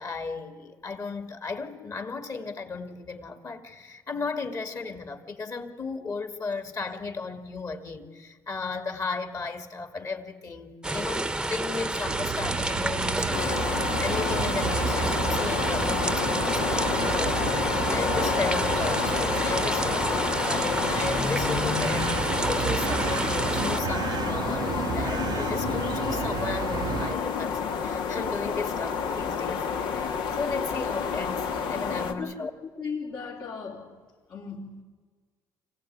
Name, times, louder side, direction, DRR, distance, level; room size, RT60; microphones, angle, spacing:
voice 1, 0.0-32.5, left 4 dB, 40° left, 2.7 m, -35 dB
sound 1, 10.8-23.8, right 2 dB, 10° right, 1.0 m, -30 dB
sound 2, 12.0-27.1, right 9 dB, 55° right, 0.7 m, -33 dB
sound 3, 13.3-32.1, left 6 dB, 75° left, 1.9 m, -29 dB
voice 2, 32.0-32.5 32.7-34.0 34.3-34.8, left 5 dB, 60° left, 3.6 m, -37 dB
25.0 x 16.0 x 9.7 m
supercardioid pair, 80°, 8 cm